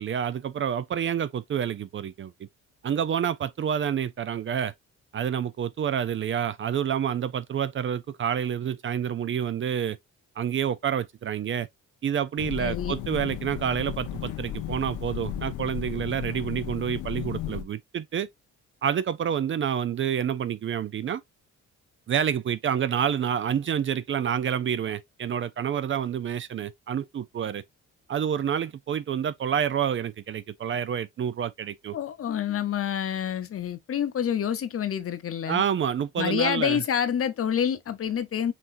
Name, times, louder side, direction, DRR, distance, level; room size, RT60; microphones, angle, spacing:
voice 1, 0.0-2.3 2.8-4.7 5.1-10.0 10.4-11.7 12.0-18.3 18.8-21.2 22.1-27.6 28.1-32.0 35.5-36.8, right 8 dB, 40° right, 0.5 m, -28 dB
sound 1, 12.4-17.6, left 10 dB, 80° left, 0.8 m, -34 dB
voice 2, 12.6-13.0 31.9-35.6 36.2-38.5, left 9 dB, 50° left, 0.8 m, -27 dB
5.9 x 3.0 x 2.6 m
cardioid pair, 90°, 30 cm